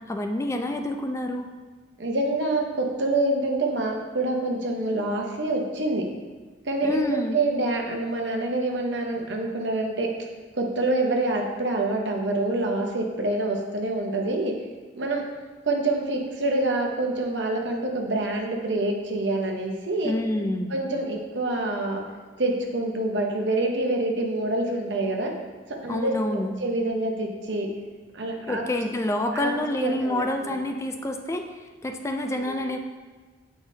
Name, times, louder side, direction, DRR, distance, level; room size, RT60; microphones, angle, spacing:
voice 1, 0.1-1.5 6.8-7.4 20.0-20.7 25.9-26.6 28.5-31.5 31.8-32.8, left 1 dB, 15° left, 4 dB, 0.3 m, -27 dB
voice 2, 2.0-6.0 6.6-10.1 10.5-14.5 15.0-15.2 15.6-20.1 20.7-22.0 22.4-25.3 25.7-27.7 28.1-28.6 29.3-29.5 29.8-30.6 32.4-32.7, right 2 dB, 75° right, 1 dB, 0.9 m, -26 dB
8.3 x 4.9 x 2.7 m, 1.4 s
head